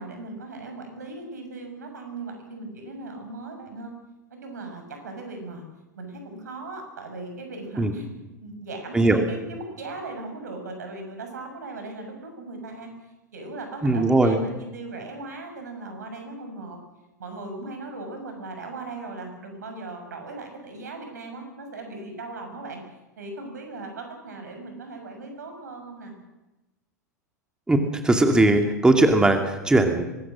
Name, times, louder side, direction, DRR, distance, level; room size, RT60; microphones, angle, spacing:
voice 1, 0.0-3.9 4.3-5.6 6.0-8.1 8.4-12.9 13.3-16.8 17.2-22.8 23.2-26.1, right 2 dB, 75° right, 5 dB, 6.6 m, -38 dB
voice 2, 13.8-14.4 27.7-27.8 28.0-30.0, right 2 dB, 10° right, 5 dB, 2.5 m, -19 dB
24.0 x 21.0 x 6.4 m, 1.0 s
figure-of-eight pair, 90°, 9 cm